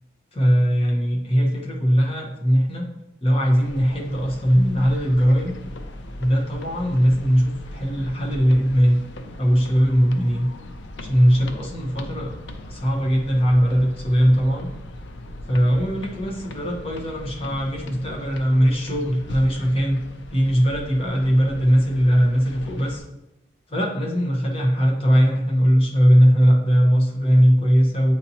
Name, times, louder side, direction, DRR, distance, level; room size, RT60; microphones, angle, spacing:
voice 1, 0.3-2.9 3.2-5.5 6.2-9.0 9.4-10.5 11.0-12.3 12.7-14.7 15.5-20.0 20.3-23.0 23.7-28.1, equal, 35° left, -1 dB, 1.1 m, -19 dB
sound 1, 3.6-23.0, left 1 dB, 90° left, 0.5 m, -39 dB
8.2 x 2.8 x 4.2 m, 0.93 s
head